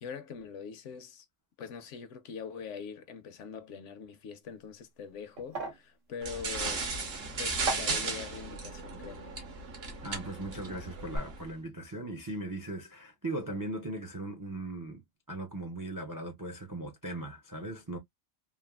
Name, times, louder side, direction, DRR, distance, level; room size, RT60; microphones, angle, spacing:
voice 1, 0.0-1.3 1.6-6.9 7.4-9.3, left 6 dB, 75° left, 1.0 m, -43 dB
sound 1, 4.4-10.6 10.9-11.2, right 3 dB, 75° right, 1.3 m, -42 dB
sound 2, 6.2-11.5, right 3 dB, 55° right, 1.1 m, -36 dB
voice 2, 10.0-15.0 15.3-18.0, right 2 dB, 35° right, 0.3 m, -38 dB
3.3 x 2.3 x 2.2 m
omnidirectional pair, 1.3 m